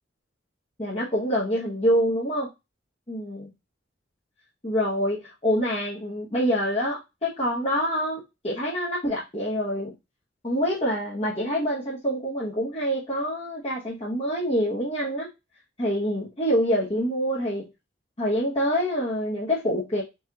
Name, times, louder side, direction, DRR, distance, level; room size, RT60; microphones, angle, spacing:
voice 1, 0.8-2.5 3.1-3.5 4.6-9.9 10.4-15.3 15.8-17.7 18.2-20.0, equal, 30° left, -7 dB, 1.1 m, -26 dB
4.2 x 2.6 x 3.6 m, 0.23 s
head